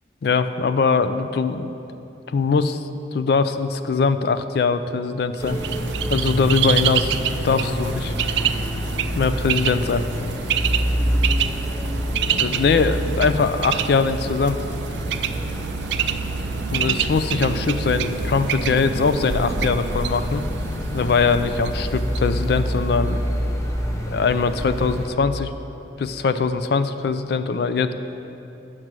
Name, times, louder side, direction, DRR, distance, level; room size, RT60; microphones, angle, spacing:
voice 1, 0.2-1.7 2.3-5.6 6.1-8.1 9.1-10.0 12.1-14.6 16.7-20.4 20.9-23.3 24.1-25.5 26.0-27.9, left 4 dB, 60° left, 11 dB, 0.4 m, -22 dB
sound 1, 5.4-25.1, equal, 15° left, 0.7 m, -27 dB
Bird, 5.4-23.2, right 9 dB, 70° right, 0.3 m, -28 dB
8.0 x 6.0 x 6.1 m, 3.0 s
head